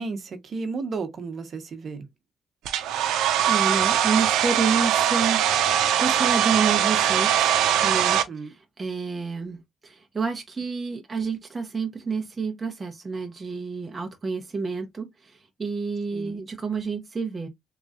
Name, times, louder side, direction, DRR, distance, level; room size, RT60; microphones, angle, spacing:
voice 1, 0.0-2.1 8.3-8.5 16.1-16.4, right 4 dB, 50° right, 1.0 m, -33 dB
Domestic sounds home sounds, 2.7-8.2, right 10 dB, 90° right, 0.6 m, -21 dB
voice 2, 3.4-7.5 7.8-17.5, right 5 dB, 30° right, 0.8 m, -29 dB
3.7 x 3.0 x 2.5 m
cardioid pair, 90°, 0 cm